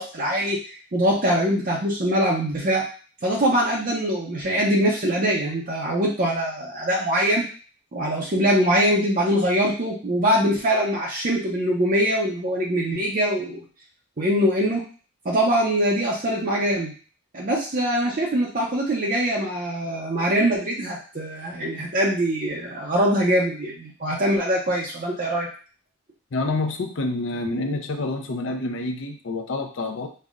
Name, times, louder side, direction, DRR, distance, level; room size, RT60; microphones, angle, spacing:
voice 1, 0.0-2.8 3.2-7.4 7.9-13.6 14.2-14.8 15.2-16.9 17.3-25.5, equal, 40° right, -3 dB, 0.5 m, -23 dB
voice 2, 26.3-30.1, left 2 dB, 60° left, 5 dB, 0.5 m, -27 dB
5.3 x 2.1 x 2.4 m, 0.40 s
head